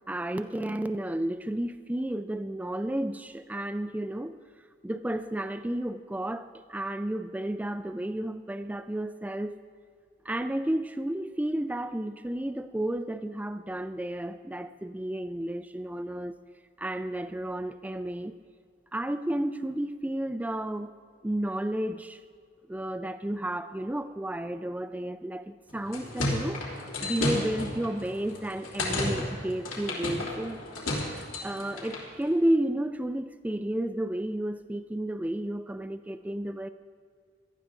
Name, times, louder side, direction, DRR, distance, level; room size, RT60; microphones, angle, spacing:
voice 1, 0.1-4.4 4.8-9.6 10.3-16.4 16.8-18.3 18.9-20.9 21.2-22.2 22.7-30.6 30.9-36.7, right 1 dB, 5° right, 10 dB, 0.3 m, -32 dB
sound 1, 25.7-32.1, left 1 dB, 80° left, 3.1 m, -33 dB
17.5 x 12.5 x 3.8 m, 2.1 s
head